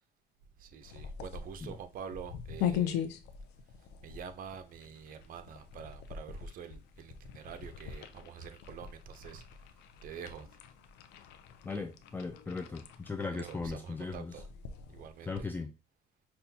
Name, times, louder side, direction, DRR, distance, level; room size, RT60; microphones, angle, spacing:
voice 1, 0.6-3.1 4.0-10.5 13.4-14.5 14.9-15.5, right 7 dB, 55° right, 0.6 m, -46 dB
sound 1, 0.8-15.3, left 9 dB, 85° left, 0.5 m, -41 dB
voice 2, 11.6-14.4 15.2-15.7, left 4 dB, 10° left, 0.3 m, -38 dB
5.5 x 2.2 x 2.8 m
cardioid pair, 110°, 17 cm